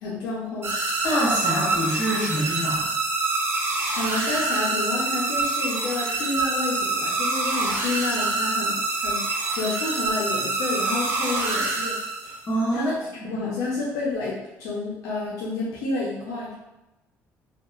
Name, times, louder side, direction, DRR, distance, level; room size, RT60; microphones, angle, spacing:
voice 1, 0.0-0.7 3.6-3.7 4.0-12.0 12.2-12.3 12.7-16.5, left 3 dB, 90° left, -6 dB, 0.5 m, -30 dB
sound 1, 0.6-12.5, right 3 dB, 40° right, 0.5 m, -26 dB
voice 2, 1.0-2.8 12.5-12.9 13.2-13.3, equal, 35° left, -7 dB, 0.7 m, -25 dB
2.8 x 2.0 x 2.3 m, 0.97 s
cardioid pair, 150°, 6 cm